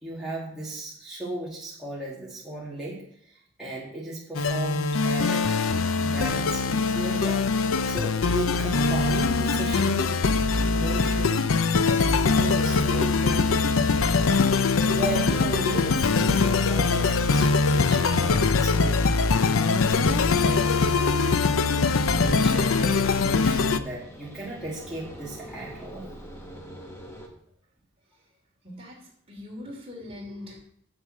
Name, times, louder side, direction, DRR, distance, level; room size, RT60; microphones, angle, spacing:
voice 1, 0.0-5.6 6.0-13.6 14.9-21.6 22.1-26.1, right 2 dB, ahead, -8 dB, 2.0 m, -35 dB
sound 1, 4.3-23.8, left 4 dB, 90° left, 0.6 m, -22 dB
sound 2, 8.1-27.3, equal, 15° left, 1.6 m, -43 dB
voice 2, 28.6-30.6, left 1 dB, 30° right, -1 dB, 3.1 m, -41 dB
8.1 x 7.1 x 6.4 m, 0.66 s
head